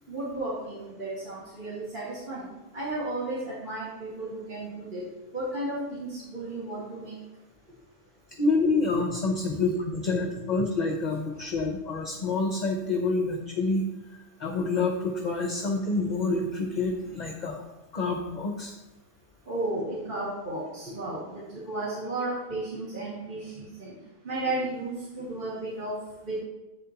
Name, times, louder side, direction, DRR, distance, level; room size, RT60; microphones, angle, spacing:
voice 1, 0.1-2.4 2.7-5.0 5.3-7.1 9.5-9.6 19.5-23.9 24.3-26.0 26.3-26.4, right 2 dB, 35° right, -8 dB, 2.3 m, -33 dB
voice 2, 8.4-13.9 14.4-17.6 17.9-18.7, left 3 dB, 35° left, 2 dB, 0.8 m, -27 dB
11.0 x 8.0 x 3.0 m, 1.1 s
omnidirectional pair, 1.5 m